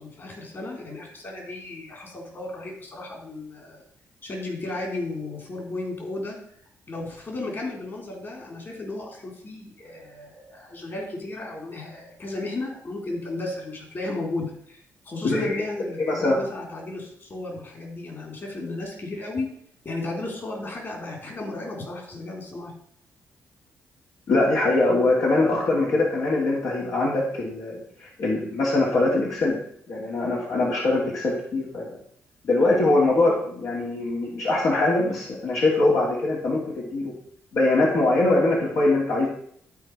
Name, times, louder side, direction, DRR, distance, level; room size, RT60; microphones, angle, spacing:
voice 1, 0.0-3.8 4.2-6.4 6.9-19.5 19.8-22.7, left 2 dB, 40° left, 0 dB, 3.7 m, -34 dB
voice 2, 15.2-15.6 16.1-16.4 24.3-29.6 29.9-31.9 32.4-37.1 37.5-39.3, left 2 dB, 65° left, -5 dB, 2.9 m, -22 dB
13.5 x 4.6 x 4.8 m, 0.65 s
cardioid pair, 95°, 6 cm